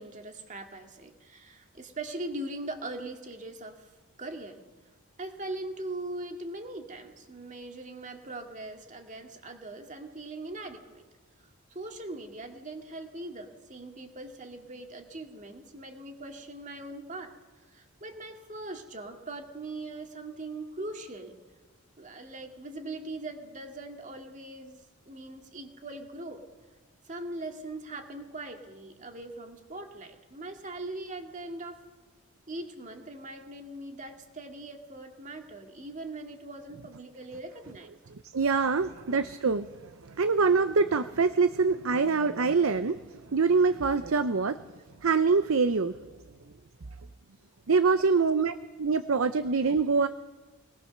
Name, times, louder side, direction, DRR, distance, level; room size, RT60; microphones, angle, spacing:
voice 1, 0.0-3.9 4.2-4.6 5.2-11.0 11.7-17.3 17.7-21.4 22.0-24.8 25.1-26.4 27.0-31.8 32.5-37.9 38.7-39.2 42.2-42.4 44.0-44.3 48.2-48.6, right 2 dB, 35° right, 4 dB, 2.1 m, -41 dB
voice 2, 38.3-43.0 43.3-44.6 45.0-46.1 47.7-50.1, right 4 dB, 75° right, 12 dB, 0.7 m, -25 dB
21.5 x 19.0 x 6.7 m, 1.3 s
head